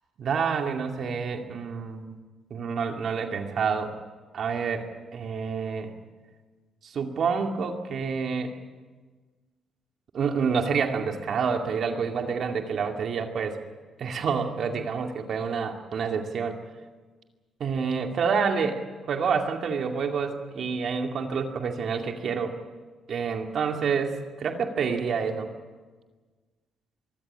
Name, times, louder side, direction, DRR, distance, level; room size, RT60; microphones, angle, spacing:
voice 1, 0.2-2.2 2.5-3.9 4.3-4.9 5.1-5.9 6.8-8.5 10.1-13.6 14.0-16.6 17.6-18.8 19.1-22.5 23.1-25.5, right 5 dB, 60° right, 4 dB, 2.4 m, -28 dB
24.0 x 14.5 x 9.7 m, 1.4 s
cardioid pair, 90°, 0 cm